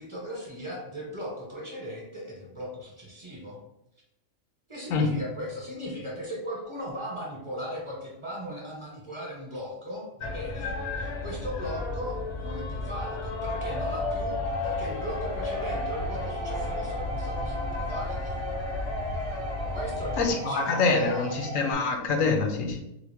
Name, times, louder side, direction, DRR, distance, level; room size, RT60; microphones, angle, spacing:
voice 1, 0.0-3.6 4.7-18.4 19.7-21.3, equal, 25° right, -4 dB, 1.1 m, -38 dB
sound 1, 10.2-20.3, left 3 dB, 65° left, 0.9 m, -32 dB
sound 2, 14.4-21.7, right 4 dB, 55° right, 0.8 m, -38 dB
voice 2, 20.2-22.8, left 4 dB, 85° left, 4 dB, 1.1 m, -25 dB
4.0 x 2.4 x 3.4 m, 0.83 s
omnidirectional pair, 1.3 m